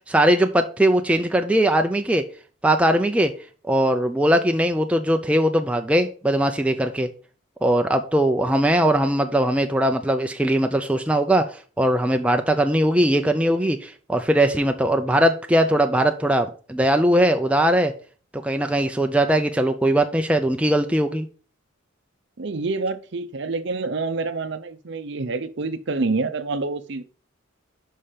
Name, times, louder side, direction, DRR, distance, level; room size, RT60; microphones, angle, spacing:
voice 1, 0.1-2.2 2.6-3.3 3.6-7.1 7.6-17.9 18.4-21.3, right 1 dB, 5° right, 0.4 m, -20 dB
voice 2, 22.4-27.0, right 3 dB, 55° right, 0.6 m, -27 dB
5.5 x 5.0 x 5.6 m
head